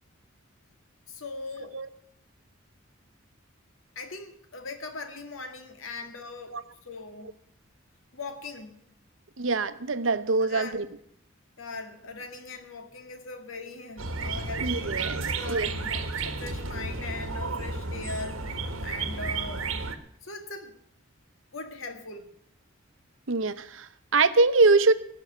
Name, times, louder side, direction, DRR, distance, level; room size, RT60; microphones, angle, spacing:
voice 1, 1.1-1.8 4.0-7.4 8.1-8.9 10.4-10.8 11.6-14.9 15.4-19.7 20.2-20.8 21.5-22.3, left 3 dB, 80° left, 7 dB, 2.0 m, -40 dB
voice 2, 9.4-10.8 14.6-15.7 23.3-24.9, right 3 dB, 70° right, 13 dB, 0.9 m, -24 dB
sound 1, 14.0-20.0, right 3 dB, 85° right, 1.3 m, -32 dB
17.0 x 6.3 x 9.6 m, 0.69 s
head